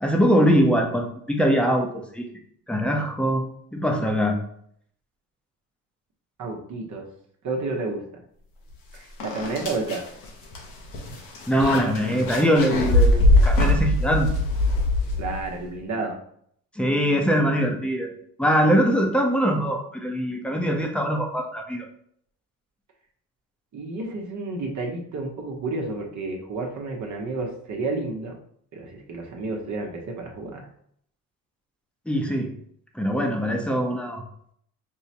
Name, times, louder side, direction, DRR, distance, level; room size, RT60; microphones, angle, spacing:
voice 1, 0.0-2.2 2.7-3.4 3.7-4.4 11.5-14.3 16.8-18.1 18.4-21.8 32.1-32.5 32.9-34.2, equal, 5° left, 2 dB, 0.6 m, -22 dB
voice 2, 6.4-7.0 7.4-8.2 8.9-10.1 15.2-16.2 23.7-28.3 28.7-30.6, right 3 dB, 55° right, 0 dB, 0.9 m, -31 dB
sound 1, 8.7-8.8 9.2-15.6, left 2 dB, 85° left, 1.0 m, -22 dB
5.4 x 2.0 x 2.8 m, 0.66 s
cardioid pair, 85°, 34 cm